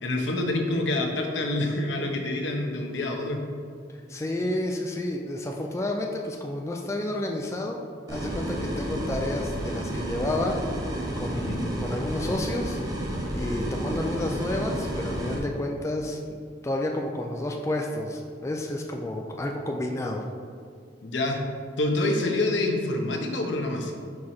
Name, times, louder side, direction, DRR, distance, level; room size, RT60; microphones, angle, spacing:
voice 1, 0.0-3.4 11.3-11.6 21.0-21.4 21.8-23.9, left 2 dB, 90° left, 2 dB, 0.8 m, -27 dB
voice 2, 4.1-7.8 8.1-10.6 11.2-12.8 13.3-20.2, left 1 dB, 15° left, 1 dB, 0.3 m, -30 dB
sound 1, 8.1-15.4, right 1 dB, 20° right, 0.9 m, -31 dB
4.7 x 4.7 x 4.2 m, 2.1 s
head